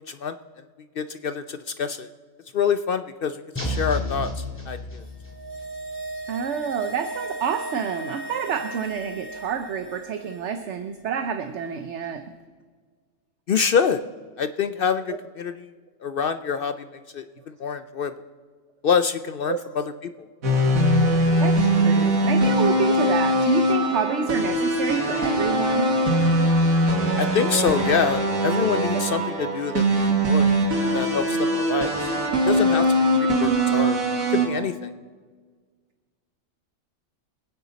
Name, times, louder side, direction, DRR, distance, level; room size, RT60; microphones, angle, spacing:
voice 1, 1.0-2.1 2.5-5.0 13.5-14.0 14.4-15.7 16.0-16.9 17.1-17.2 17.6-18.1 18.8-20.1 27.2-30.6 30.8-32.1 32.5-32.9 33.2-34.0 34.3-34.9, left 6 dB, 60° left, 10 dB, 0.6 m, -26 dB
sound 1, 3.6-5.5, left 1 dB, 10° left, 2.7 m, -30 dB
sound 2, 5.1-10.6 10.8-10.9, right 2 dB, 40° left, 2.7 m, -36 dB
voice 2, 6.3-12.3 15.1-15.2 19.5-19.6 21.4-25.9 28.9-29.0, right 7 dB, 60° right, 8 dB, 1.0 m, -28 dB
sound 3, 20.4-34.5, right 1 dB, 85° right, 2.2 m, -21 dB
25.0 x 9.5 x 4.0 m, 1.5 s
omnidirectional pair, 1.4 m